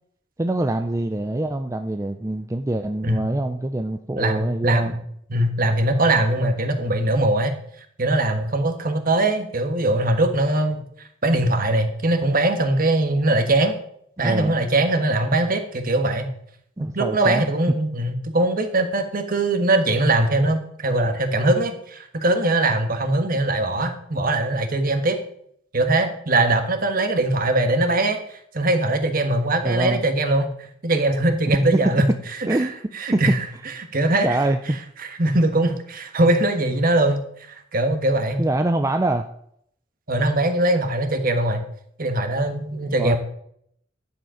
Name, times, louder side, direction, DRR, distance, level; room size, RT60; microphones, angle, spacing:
voice 1, 0.4-4.9 14.2-14.6 16.8-17.5 29.6-30.0 32.5-32.8 33.1-33.2 34.2-34.8 38.4-39.3 43.0-43.2, right 2 dB, 15° right, 6 dB, 0.5 m, -24 dB
voice 2, 4.1-4.9 5.3-7.5 8.0-13.7 14.2-16.3 16.9-25.2 25.7-32.0 32.4-32.7 32.9-33.4 33.9-34.4 35.0-37.2 37.5-38.4 40.1-41.6 42.0-43.2, right 2 dB, 50° right, 6 dB, 1.4 m, -21 dB
11.0 x 7.8 x 5.0 m, 0.69 s
head